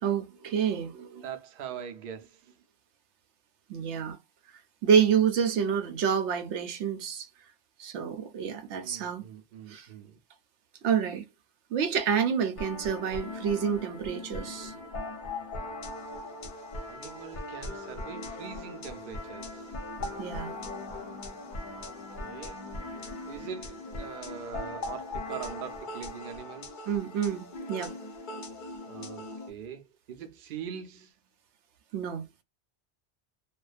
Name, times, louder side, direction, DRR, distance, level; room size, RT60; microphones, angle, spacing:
voice 1, 0.0-1.2 3.7-4.2 4.8-7.3 7.8-9.2 9.7-9.9 10.8-11.2 11.7-14.8 20.2-20.5 26.9-27.9 31.9-32.3, right 7 dB, 85° right, 0.9 m, -28 dB
voice 2, 1.2-2.4 8.8-10.2 16.9-19.6 21.7-22.6 23.3-26.7 28.8-31.1, right 7 dB, 60° right, 0.7 m, -42 dB
sound 1, 12.6-29.5, left 2 dB, 50° left, 0.7 m, -39 dB
2.5 x 2.2 x 2.4 m
omnidirectional pair, 1.2 m